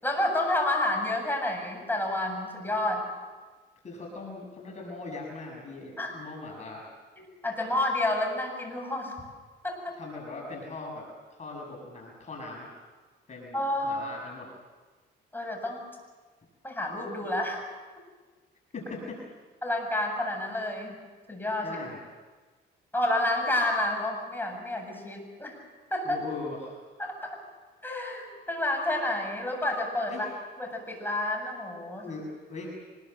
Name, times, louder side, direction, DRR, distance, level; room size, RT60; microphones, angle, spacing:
voice 1, 0.0-3.0 6.0-6.1 7.2-9.1 9.6-10.0 13.5-14.0 15.3-15.9 16.6-17.6 19.6-21.0 21.3-21.8 22.9-25.6 25.9-26.2 27.0-27.4 27.8-30.3 30.6-32.1, left 1 dB, 10° left, 2 dB, 7.8 m, -29 dB
voice 2, 3.8-6.9 10.0-11.0 11.4-12.7 13.3-14.5 18.7-19.2 21.6-22.0 26.0-26.8 30.1-30.3 32.0-32.7, left 3 dB, 35° left, -1 dB, 6.7 m, -40 dB
25.0 x 21.0 x 7.9 m, 1.3 s
cardioid pair, 90°, 20 cm